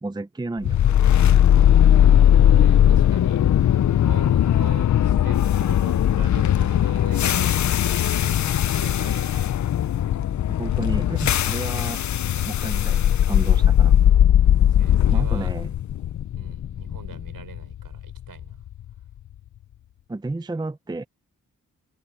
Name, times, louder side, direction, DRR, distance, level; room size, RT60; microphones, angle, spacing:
voice 1, 0.0-0.8 10.6-12.0 12.4-14.0 15.1-15.7 20.1-21.0, right 2 dB, 10° right, 0.7 m, -31 dB
sound 1, 0.6-18.7, left 10 dB, 55° left, 0.5 m, -19 dB
voice 2, 2.1-3.4 3.8-7.6 8.2-9.5 14.6-15.5 16.4-18.7, right 7 dB, 70° right, 6.2 m, -42 dB
cardioid pair, 80°, 35 cm